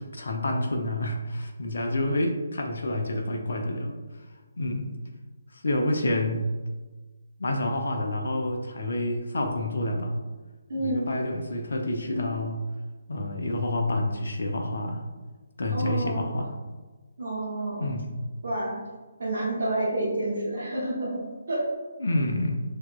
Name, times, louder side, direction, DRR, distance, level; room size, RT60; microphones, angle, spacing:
voice 1, 0.0-4.0 4.6-4.9 5.5-6.4 7.4-10.2 10.8-12.6 13.1-15.1 15.6-16.6 17.8-18.2 22.0-22.6, left 1 dB, 55° left, 2 dB, 0.5 m, -28 dB
voice 2, 10.7-11.1 12.1-12.2 15.7-16.2 17.2-17.9 18.4-18.7 19.2-21.2 21.5-21.6, right 1 dB, 55° right, -7 dB, 0.9 m, -29 dB
5.8 x 2.7 x 2.3 m, 1.3 s
figure-of-eight pair, 140°, 0 cm